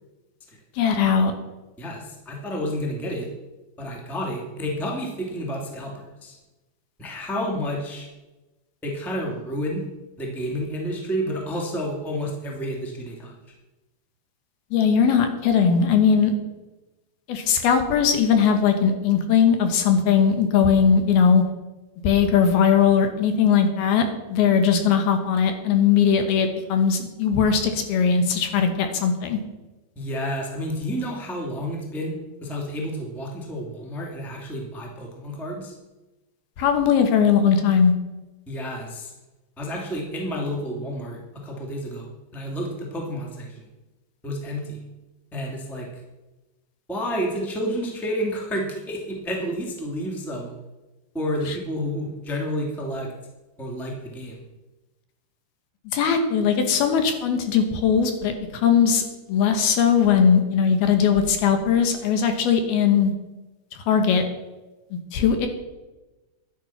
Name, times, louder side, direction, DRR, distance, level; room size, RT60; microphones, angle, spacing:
voice 1, 0.8-1.3 14.7-16.3 17.3-21.4 22.0-29.4 36.6-37.9 51.5-51.6 55.9-63.1 63.9-64.2 65.1-65.5, left 7 dB, 70° left, 6 dB, 2.9 m, -19 dB
voice 2, 1.8-3.3 3.8-6.4 7.0-8.1 8.8-9.8 10.2-13.3 29.9-35.7 38.5-39.1 39.6-43.7 44.2-44.8 45.3-45.9 46.9-50.5 51.1-53.1 53.6-54.4, equal, ahead, -1 dB, 1.5 m, -30 dB
12.0 x 11.0 x 5.9 m, 1.1 s
omnidirectional pair, 4.9 m